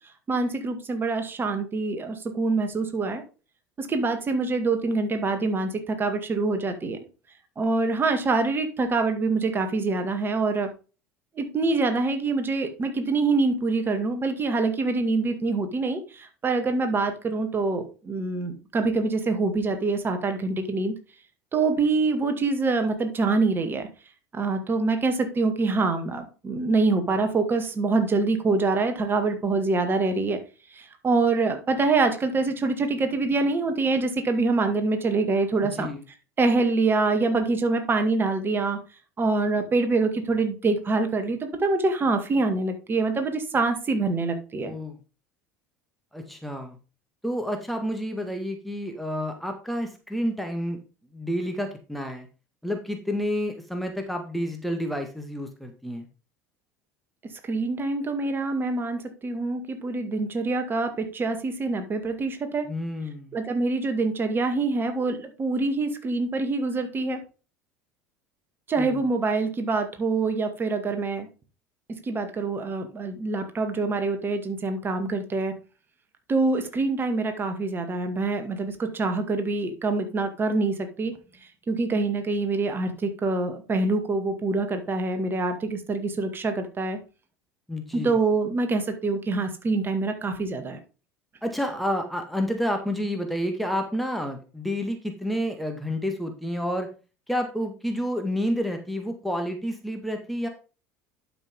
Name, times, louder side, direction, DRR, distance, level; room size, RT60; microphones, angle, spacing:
voice 1, 0.3-3.2 3.8-7.0 7.6-10.7 11.4-20.9 21.5-23.9 24.3-30.4 30.7-35.9 36.4-38.8 39.2-44.7 57.4-62.7 63.3-67.2 68.7-71.3 72.0-75.5 76.3-81.1 81.7-87.0 87.9-90.8, right 3 dB, 25° right, 7 dB, 2.0 m, -25 dB
voice 2, 44.6-45.0 46.1-46.8 47.2-50.8 51.1-52.3 52.6-56.1 62.7-63.4 68.8-69.0 87.7-88.2 91.4-96.9 97.3-100.5, equal, ahead, 4 dB, 1.8 m, -29 dB
11.5 x 6.0 x 3.7 m, 0.33 s
figure-of-eight pair, 65°, 8 cm